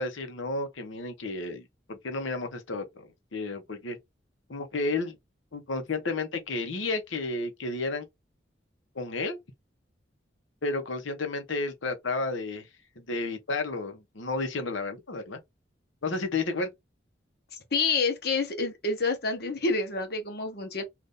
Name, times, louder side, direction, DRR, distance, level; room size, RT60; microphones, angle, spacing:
voice 1, 0.0-4.0 4.5-5.2 5.5-8.1 8.9-9.4 10.6-12.7 13.1-15.4 16.0-16.7, left 3 dB, 85° left, 0.9 m, -32 dB
voice 2, 17.7-20.8, left 4 dB, 55° left, 0.9 m, -28 dB
2.6 x 2.5 x 3.5 m
head